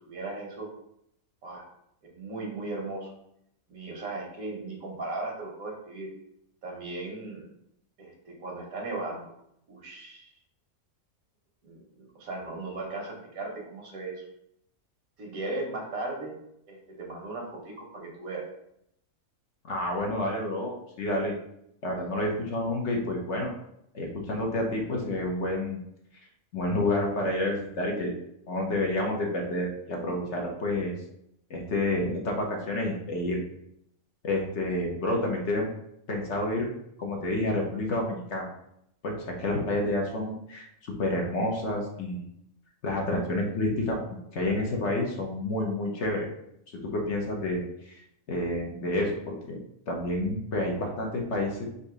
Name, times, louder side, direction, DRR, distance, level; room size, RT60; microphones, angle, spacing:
voice 1, 0.1-0.7 1.4-1.7 2.0-3.1 3.7-6.1 6.6-7.5 8.0-9.3 9.7-10.3 11.6-14.2 15.2-16.3 16.7-18.4, right 2 dB, 80° right, 0 dB, 1.5 m, -37 dB
voice 2, 19.7-21.4 21.8-23.5 23.9-25.8 26.5-28.1 28.5-30.9 31.5-33.4 34.2-35.7 36.1-36.7 37.0-38.5 39.0-42.3 42.8-46.3 46.8-48.0 48.3-49.6 49.9-51.6, left 1 dB, 60° left, 0 dB, 1.1 m, -29 dB
4.0 x 2.7 x 4.7 m, 0.77 s
omnidirectional pair, 1.4 m